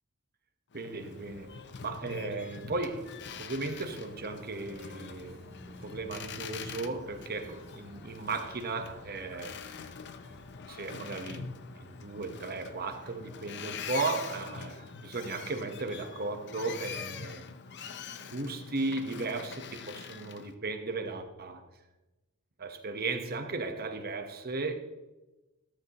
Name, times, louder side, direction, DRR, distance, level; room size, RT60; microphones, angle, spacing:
Boat Water vehicle, 0.7-20.5, left 6 dB, 50° left, 0.6 m, -44 dB
voice 1, 0.7-9.6 10.7-17.4 18.3-21.6 22.6-24.7, right 3 dB, 45° right, 1.2 m, -36 dB
sound 1, 1.2-13.2, equal, 30° right, 3.2 m, -56 dB
13.5 x 12.5 x 3.0 m
head